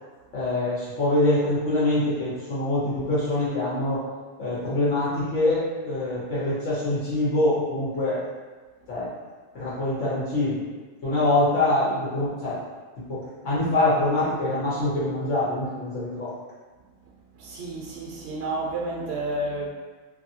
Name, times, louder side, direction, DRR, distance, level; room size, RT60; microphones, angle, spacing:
voice 1, 0.3-4.0 4.4-8.2 8.9-9.1 9.5-10.6 11.0-12.6 13.1-16.3, left 2 dB, 85° left, -9 dB, 1.2 m, -24 dB
voice 2, 17.3-19.7, right 2 dB, 70° right, -4 dB, 0.8 m, -30 dB
2.7 x 2.7 x 2.7 m, 1.3 s
omnidirectional pair, 1.2 m